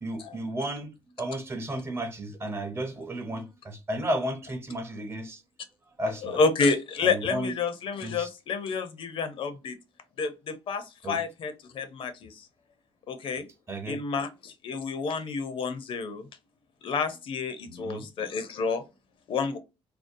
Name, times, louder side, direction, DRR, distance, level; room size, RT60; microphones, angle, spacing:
voice 1, 0.0-0.9 1.2-5.4 6.0-6.4 7.0-7.5 8.0-8.3 11.0-11.2 13.7-14.0 17.7-18.1, right 1 dB, 25° right, 0.6 m, -33 dB
voice 2, 6.2-9.8 10.2-12.5 13.1-13.5 13.9-16.3 16.8-18.8 19.3-19.6, left 4 dB, 60° left, 0.5 m, -29 dB
2.6 x 2.0 x 2.5 m
cardioid pair, 110°, 10 cm